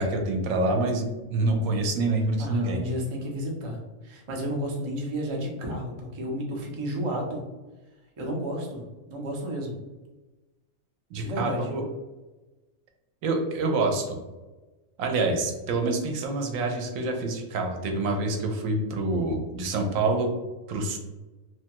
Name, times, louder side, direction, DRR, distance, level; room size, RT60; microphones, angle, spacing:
voice 1, 0.0-2.8 11.1-11.8 13.2-14.2 15.0-20.3 20.7-21.0, right 2 dB, 80° right, 3 dB, 1.0 m, -26 dB
voice 2, 2.4-7.4 8.2-9.7 11.1-11.7, equal, 45° right, -1 dB, 0.3 m, -32 dB
3.0 x 2.2 x 2.8 m, 1.2 s
omnidirectional pair, 1.4 m